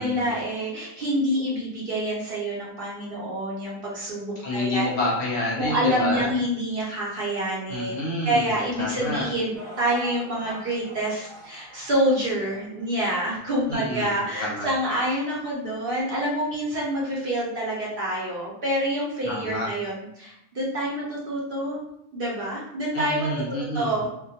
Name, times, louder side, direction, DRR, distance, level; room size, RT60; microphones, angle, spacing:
voice 1, 0.0-4.9 5.6-21.8 22.1-23.4 23.7-24.1, right 1 dB, 55° right, -5 dB, 0.8 m, -27 dB
voice 2, 4.4-6.3 7.7-9.3 13.7-14.1 14.4-14.7 19.2-19.7 22.9-24.0, left 1 dB, 60° left, -4 dB, 0.7 m, -28 dB
sound 1, 9.5-15.8 16.5-16.6 17.3-17.4, left 1 dB, 5° left, 0.6 m, -45 dB
2.2 x 2.1 x 2.7 m, 0.80 s
omnidirectional pair, 1.3 m